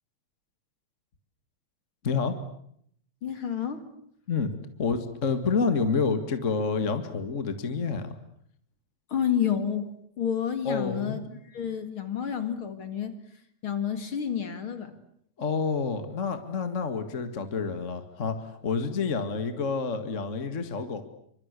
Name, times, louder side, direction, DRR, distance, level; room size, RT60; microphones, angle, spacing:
voice 1, 2.0-2.4 4.3-4.5 4.8-8.1 10.7-11.2 15.4-21.0, left 5 dB, 30° left, 8 dB, 1.9 m, -28 dB
voice 2, 3.2-3.9 9.1-11.2 11.5-13.2 13.6-15.0, left 8 dB, 45° left, 9 dB, 2.7 m, -30 dB
27.5 x 25.5 x 8.3 m, 0.70 s
omnidirectional pair, 3.3 m